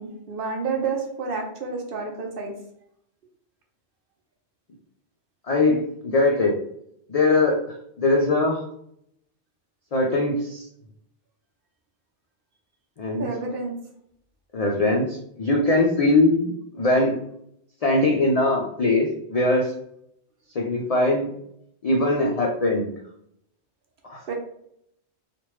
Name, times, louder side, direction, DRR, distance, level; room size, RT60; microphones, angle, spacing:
voice 1, 0.0-2.5 13.2-13.7 24.3-24.4, right 4 dB, 60° right, 2 dB, 0.7 m, -29 dB
voice 2, 5.5-6.6 7.1-7.6 8.0-8.6 9.9-10.7 13.0-13.3 14.5-17.2 17.8-19.7 20.5-21.3 21.8-22.9 24.1-24.2, left 2 dB, 65° left, -1 dB, 0.3 m, -21 dB
3.1 x 2.4 x 3.1 m, 0.72 s
omnidirectional pair, 1.2 m